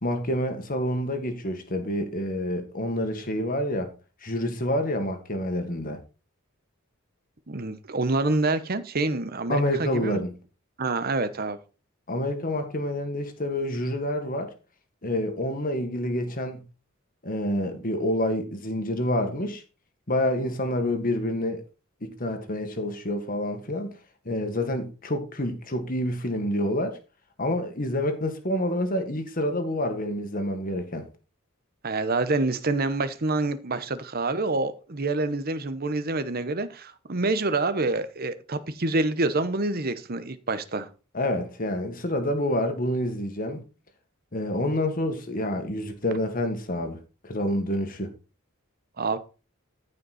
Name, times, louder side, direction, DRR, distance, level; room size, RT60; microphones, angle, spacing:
voice 1, 0.0-3.9 4.2-6.0 9.5-10.3 12.1-14.5 15.0-16.6 17.2-19.6 20.1-21.6 22.0-23.9 24.3-27.0 27.4-31.1 41.1-43.6 44.3-47.0 47.2-48.1, left 1 dB, 40° left, 1.8 m, -28 dB
voice 2, 7.5-10.2 10.8-11.6 31.8-40.9 49.0-49.2, right 2 dB, 45° right, 1.0 m, -27 dB
14.0 x 5.4 x 4.3 m
head